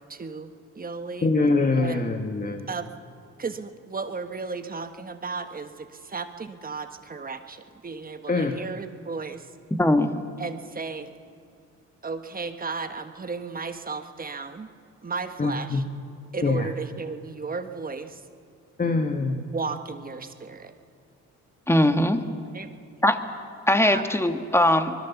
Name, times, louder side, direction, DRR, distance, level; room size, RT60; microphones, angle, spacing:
voice 1, 0.0-1.3 1.8-2.0 2.7-2.9 3.4-9.5 10.4-11.1 12.0-14.7 15.0-15.8 16.3-18.2 19.5-20.7 22.5-22.7 23.8-24.0, right 4 dB, 30° right, 8 dB, 1.4 m, -34 dB
voice 2, 1.2-2.6 8.3-8.5 15.4-15.8 16.4-16.7 18.8-19.5, left 3 dB, 30° left, 5 dB, 1.5 m, -24 dB
voice 3, 9.8-10.1 21.7-22.2 23.0-23.2 23.7-24.9, left 1 dB, 10° left, 8 dB, 1.5 m, -20 dB
24.5 x 21.0 x 7.2 m, 2.4 s
cardioid pair, 90°, 30 cm